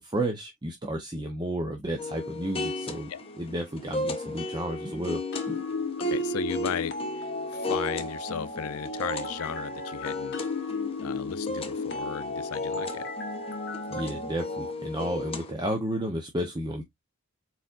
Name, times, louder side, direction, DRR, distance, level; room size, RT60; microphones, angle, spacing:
voice 1, 0.0-3.1 3.4-5.6 13.9-16.8, right 1 dB, 20° right, 0.8 m, -32 dB
sound 1, 2.0-15.5, left 1 dB, 25° left, 0.9 m, -35 dB
sound 2, 5.3-14.7, left 3 dB, 55° left, 1.0 m, -35 dB
voice 2, 6.0-10.4 11.0-13.0, left 7 dB, 90° left, 0.5 m, -35 dB
4.3 x 4.2 x 2.5 m
head